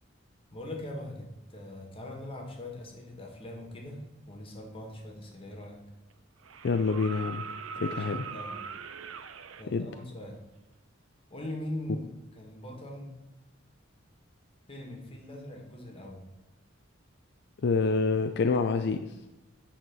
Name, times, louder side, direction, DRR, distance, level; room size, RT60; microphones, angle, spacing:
voice 1, 0.5-5.8 7.8-8.6 9.6-10.4 11.3-13.2 14.7-16.2, left 1 dB, 30° left, 1 dB, 1.8 m, -41 dB
sound 1, 5.3-5.4 6.4-9.6 11.4-11.5, right 6 dB, 75° right, 0.6 m, -40 dB
voice 2, 6.6-7.4 7.8-8.2 9.7-9.9 17.6-19.1, left 4 dB, 55° left, 7 dB, 0.4 m, -27 dB
9.4 x 4.4 x 6.1 m, 1.0 s
head